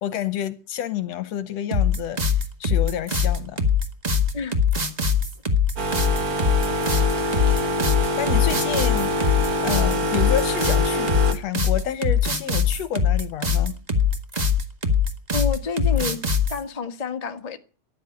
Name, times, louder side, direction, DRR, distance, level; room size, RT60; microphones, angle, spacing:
voice 1, 0.0-3.7 8.2-9.2 9.6-13.8, left 10 dB, 70° left, 1.9 m, -29 dB
sound 1, 1.7-16.6, left 5 dB, 25° right, 0.9 m, -22 dB
sound 2, 5.8-11.3, equal, 45° right, 1.3 m, -25 dB
voice 2, 15.3-16.2 16.5-17.6, left 5 dB, 40° left, 0.5 m, -28 dB
13.0 x 11.5 x 9.7 m
omnidirectional pair, 3.5 m